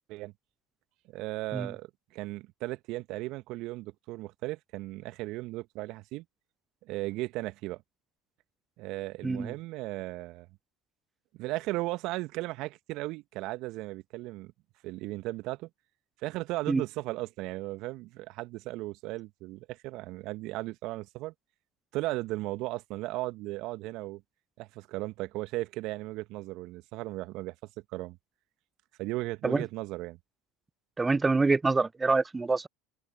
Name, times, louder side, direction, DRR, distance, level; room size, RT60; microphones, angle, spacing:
voice 1, 1.1-6.2 6.8-7.8 8.8-10.5 11.4-14.5 14.8-15.7 16.2-21.3 21.9-24.2 24.6-27.5 27.9-28.2 29.0-30.2, right 19 dB, 55° right, 1.6 m, -36 dB
voice 2, 31.0-32.7, right 3 dB, 15° right, 0.4 m, -26 dB
open air
figure-of-eight pair, 75°, 0 cm